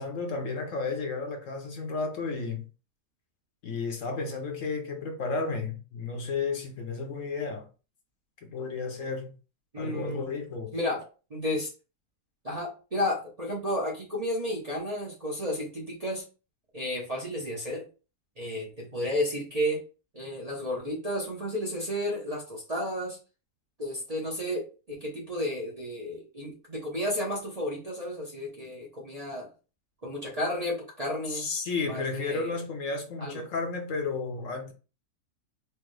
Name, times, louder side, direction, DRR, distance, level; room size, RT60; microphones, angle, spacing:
voice 1, 0.0-2.7 3.6-7.7 8.4-9.4 9.8-10.8 31.3-34.7, left 4 dB, 65° left, 1.1 m, -32 dB
voice 2, 9.7-10.3 10.7-11.0 11.3-11.7 12.4-16.2 16.7-17.9 18.4-19.8 20.1-23.2 23.8-29.5 30.0-31.5 31.8-32.6 33.2-33.4, left 1 dB, 35° right, 0.7 m, -32 dB
4.5 x 2.1 x 3.2 m
omnidirectional pair, 1.6 m